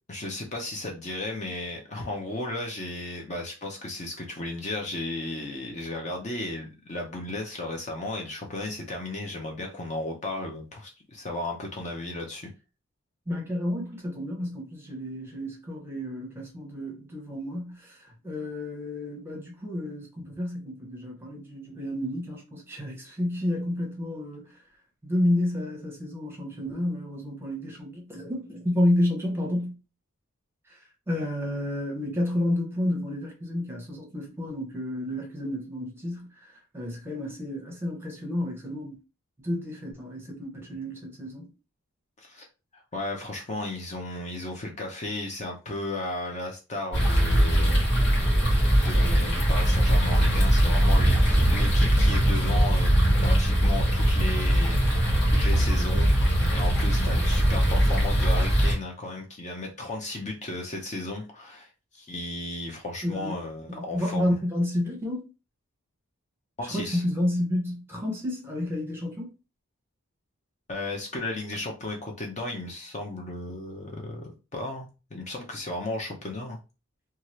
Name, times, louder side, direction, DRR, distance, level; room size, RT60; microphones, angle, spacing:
voice 1, 0.1-12.5 42.2-42.5 42.7-47.8 48.6-52.9 53.2-54.8 55.3-64.3 66.6-67.0 70.7-76.6, left 2 dB, 35° left, 0.6 m, -34 dB
voice 2, 13.3-24.6 25.0-29.8 30.7-39.0 39.4-41.5 63.0-63.4 63.7-65.2 66.6-69.3, left 1 dB, 10° right, 0.9 m, -30 dB
sound 1, 46.9-58.7, equal, 55° left, 1.3 m, -21 dB
2.8 x 2.4 x 3.0 m
head